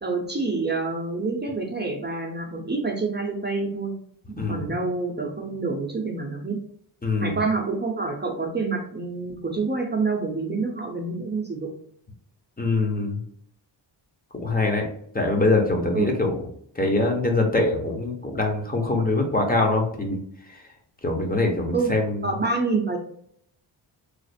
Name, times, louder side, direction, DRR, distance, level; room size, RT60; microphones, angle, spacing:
voice 1, 0.0-3.9 4.3-6.6 7.2-11.7 15.9-16.1 21.7-21.9 22.2-23.0, right 3 dB, 20° right, 1 dB, 0.7 m, -27 dB
voice 2, 4.3-4.7 7.0-7.4 12.6-13.2 14.3-14.9 15.1-16.4 16.7-20.2 20.5-20.6 21.0-22.3, left 2 dB, 20° left, 1 dB, 0.9 m, -23 dB
3.2 x 2.0 x 4.1 m, 0.66 s
cardioid pair, 90°, 47 cm